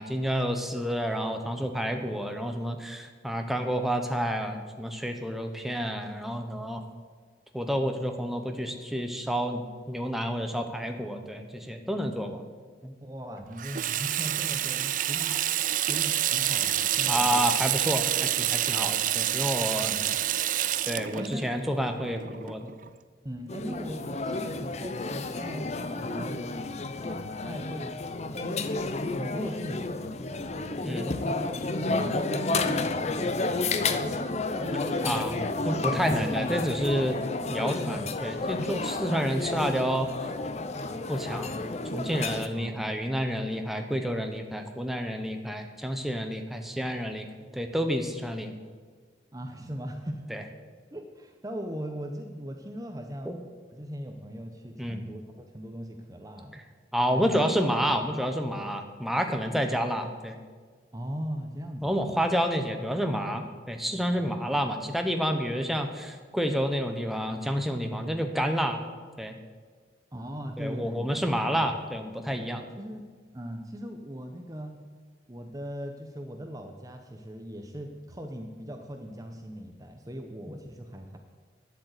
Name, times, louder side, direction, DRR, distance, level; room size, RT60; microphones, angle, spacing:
voice 1, 0.0-6.8 7.5-12.4 12.8-12.9 17.1-19.9 20.8-22.7 30.8-31.1 35.0-35.3 35.6-37.2 37.5-40.1 41.1-41.6 41.9-47.3 47.5-48.5 50.3-50.4 53.3-53.4 54.8-55.0 56.9-60.4 61.8-68.8 69.2-69.4 70.6-72.7, equal, ahead, 4 dB, 0.9 m, -29 dB
voice 2, 13.0-15.3 15.9-17.5 19.8-20.2 21.1-21.5 22.2-22.4 23.2-25.7 26.0-26.4 26.9-27.9 28.3-31.5 31.9-34.2 34.6-35.5 35.7-36.3 37.9-38.2 42.5-42.9 49.3-50.3 50.9-53.3 53.7-55.2 55.5-56.6 57.1-57.4 60.9-62.0 64.1-64.4 70.1-71.2 71.5-71.7 72.8-73.0 73.3-74.8 75.3-81.2, equal, 20° right, 4 dB, 0.8 m, -39 dB
Water tap faucet / Sink (filling or washing), 13.6-22.9, right 12 dB, 45° right, 0.4 m, -28 dB
sound 1, 23.5-42.5, left 3 dB, 35° left, 0.6 m, -31 dB
10.5 x 8.2 x 8.1 m, 1.5 s
head